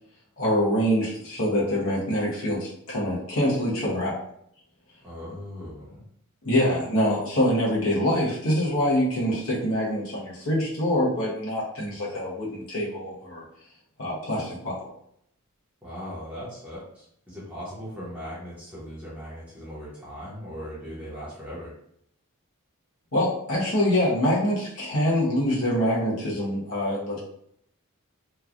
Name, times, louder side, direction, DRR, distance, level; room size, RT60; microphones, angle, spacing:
voice 1, 0.4-4.2 6.4-13.4 14.0-14.9 23.1-27.2, equal, 70° left, -6 dB, 0.9 m, -25 dB
voice 2, 5.0-6.0 15.8-21.7, equal, 5° right, -10 dB, 0.9 m, -39 dB
3.0 x 2.3 x 2.4 m, 0.70 s
head